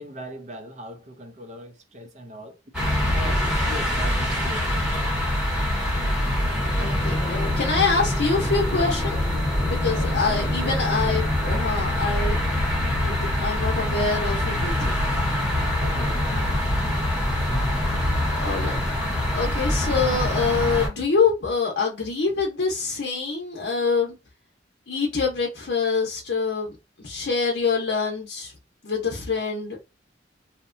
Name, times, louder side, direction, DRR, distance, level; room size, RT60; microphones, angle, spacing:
voice 1, 0.0-2.5 3.1-4.7 9.9-10.7 15.8-16.5, equal, 40° right, 0.6 m, -39 dB
sound 1, 2.7-20.9, left 1 dB, 5° right, 1.0 m, -24 dB
voice 2, 6.8-9.2 9.6-12.4 13.0-15.3 18.4-18.8 19.3-24.1 24.9-28.5 28.8-29.8, left 4 dB, 65° left, 0.7 m, -25 dB
2.8 x 2.1 x 2.5 m
head